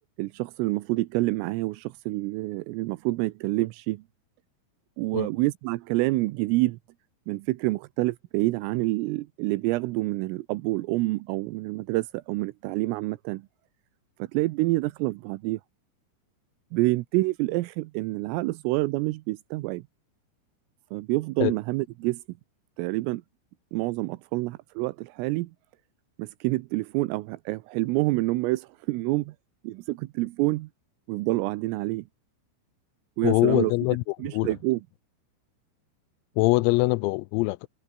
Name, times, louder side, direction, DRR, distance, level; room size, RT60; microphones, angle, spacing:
voice 1, 0.2-4.0 5.0-6.8 7.3-13.4 14.2-15.6 16.7-19.8 20.9-22.2 22.8-23.2 23.7-25.5 26.2-29.3 29.7-30.7 31.1-32.1 33.2-33.7 34.2-34.8, right 20 dB, 85° right, 3.4 m, -27 dB
voice 2, 33.2-34.6 36.4-37.7, left 24 dB, 85° left, 3.3 m, -23 dB
omnidirectional pair, 6.0 m